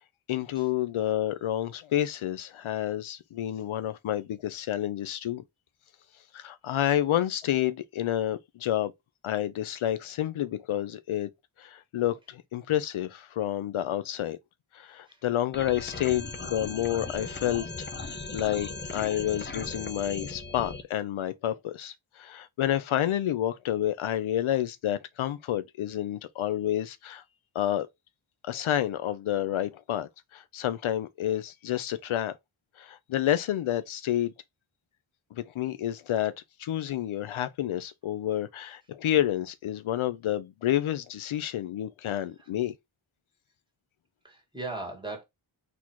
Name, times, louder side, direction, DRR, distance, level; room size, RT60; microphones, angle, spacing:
voice 1, 0.3-5.4 6.3-8.9 9.2-11.3 11.6-14.4 14.7-27.2 27.5-27.9 28.4-32.4 32.8-34.3 35.3-36.3 36.6-42.7, left 12 dB, 75° left, 0.6 m, -29 dB
sound 1, 15.5-20.8, left 3 dB, 25° left, 0.6 m, -38 dB
voice 2, 44.2-45.2, right 2 dB, 10° right, 1.7 m, -39 dB
4.1 x 2.9 x 4.5 m
wide cardioid pair, 145°, 48 cm